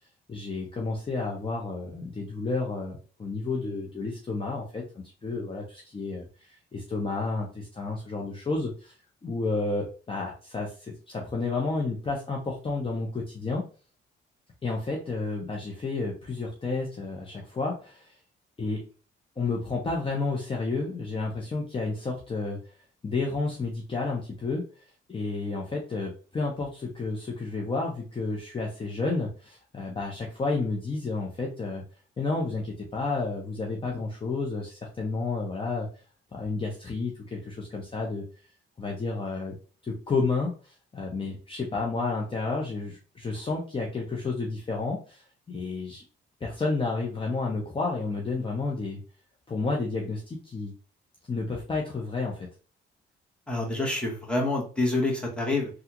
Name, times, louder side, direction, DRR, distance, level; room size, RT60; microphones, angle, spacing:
voice 1, 0.3-6.2 6.7-8.9 9.2-13.6 14.6-18.1 18.6-18.8 19.4-22.6 23.0-24.7 25.1-31.8 32.2-35.9 36.3-38.2 38.8-39.5 39.8-46.0 46.4-49.0 49.5-50.7 51.3-52.5, left 3 dB, 25° left, -1 dB, 0.8 m, -31 dB
voice 2, 53.5-55.7, left 2 dB, 5° left, -2 dB, 1.3 m, -27 dB
3.4 x 2.4 x 3.0 m, 0.36 s
cardioid pair, 90°, 20 cm